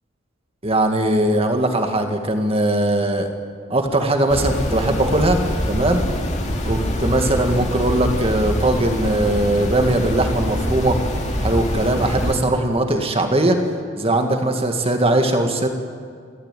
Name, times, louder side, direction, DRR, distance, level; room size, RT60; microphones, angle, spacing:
voice 1, 0.6-3.3 3.7-5.4 5.7-6.0 6.6-11.0 11.4-13.6 14.0-15.7, right 1 dB, 30° right, 5 dB, 2.0 m, -20 dB
sound 1, 4.3-12.3, equal, 35° left, 2.7 m, -24 dB
29.0 x 13.5 x 9.2 m, 2.1 s
head